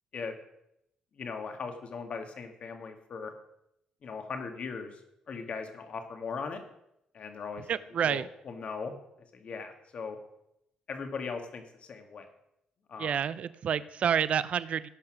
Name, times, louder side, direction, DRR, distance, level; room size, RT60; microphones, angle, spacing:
voice 1, 1.2-3.3 4.0-5.0 5.3-6.6 7.1-7.7 8.0-8.9 9.4-10.2 10.9-12.3 12.9-13.2, left 5 dB, 55° left, 5 dB, 2.2 m, -39 dB
voice 2, 7.7-8.3 13.0-14.9, right 8 dB, 60° right, 16 dB, 0.6 m, -29 dB
17.0 x 5.9 x 6.3 m, 0.81 s
cardioid pair, 80°, 2 cm